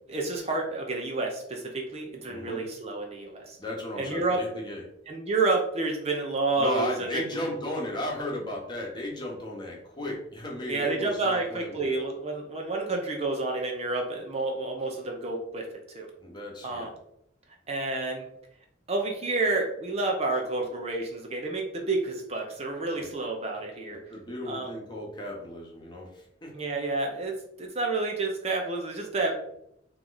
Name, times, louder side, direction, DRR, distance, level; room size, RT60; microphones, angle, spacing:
voice 1, 0.1-3.6 4.0-4.4 5.1-7.4 10.7-15.7 15.9-16.1 16.6-16.9 17.7-18.3 18.9-24.0 24.5-24.7 26.5-29.4, right 3 dB, 35° right, 1 dB, 0.6 m, -29 dB
voice 2, 2.3-2.6 3.6-4.8 6.6-11.9 16.2-16.9 23.0-23.1 23.9-26.5, left 1 dB, 25° left, -2 dB, 1.1 m, -35 dB
3.7 x 3.0 x 3.9 m, 0.75 s
head